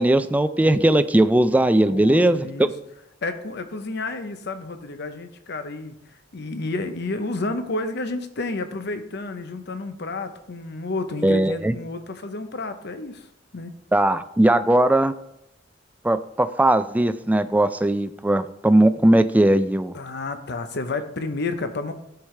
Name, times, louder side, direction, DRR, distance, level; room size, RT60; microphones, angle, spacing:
voice 1, 0.0-2.4 11.2-11.7 13.9-15.1 16.0-19.9, right 1 dB, 10° right, 12 dB, 0.3 m, -19 dB
voice 2, 1.9-2.7 3.2-5.9 6.3-13.3 13.5-13.7 19.9-21.9, left 2 dB, 60° left, 9 dB, 0.7 m, -30 dB
12.5 x 4.8 x 3.2 m, 0.81 s
head